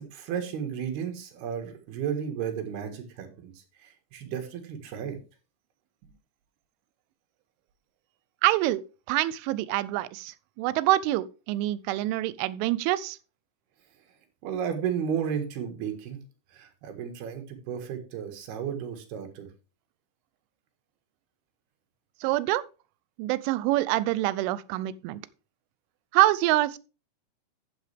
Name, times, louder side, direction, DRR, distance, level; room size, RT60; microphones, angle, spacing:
voice 1, 0.0-3.5 3.8-5.2 14.4-16.2 16.5-19.5, right 8 dB, 65° right, 3.3 m, -33 dB
voice 2, 8.4-8.8 9.1-13.2 22.2-22.6 23.2-25.2 26.1-26.8, right 16 dB, 90° right, 3.1 m, -25 dB
13.0 x 7.8 x 3.4 m
omnidirectional pair, 5.4 m